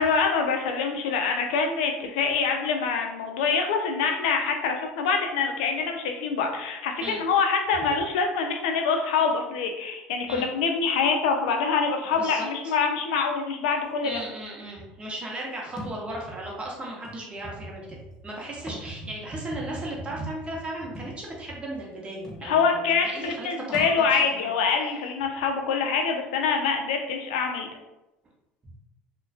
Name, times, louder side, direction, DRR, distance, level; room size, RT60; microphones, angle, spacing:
voice 1, 0.0-14.2 22.4-27.7, left 5 dB, 85° left, 3 dB, 0.4 m, -25 dB
voice 2, 12.1-12.7 14.0-18.0 18.2-24.5, right 1 dB, 25° right, -3 dB, 0.8 m, -36 dB
Thump thud, 15.8-16.0 17.0-17.2 18.5-18.9 19.3-19.4 20.9-21.2 21.9-22.0 22.2-22.5 23.7-24.0, left 1 dB, 15° left, 0.7 m, -40 dB
2.4 x 2.1 x 2.4 m, 0.95 s
supercardioid pair, 90°, 4 cm